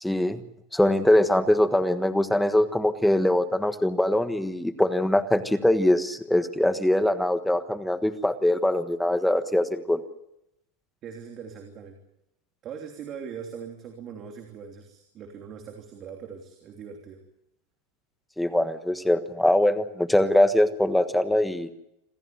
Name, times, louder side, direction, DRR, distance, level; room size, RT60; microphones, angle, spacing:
voice 1, 0.0-0.4 0.7-10.0 18.4-21.7, left 1 dB, 5° left, 9 dB, 1.4 m, -22 dB
voice 2, 11.0-12.0 12.6-17.2, right 7 dB, 30° right, 3 dB, 3.1 m, -41 dB
27.5 x 14.0 x 9.3 m, 0.83 s
supercardioid pair, 150°, 0 cm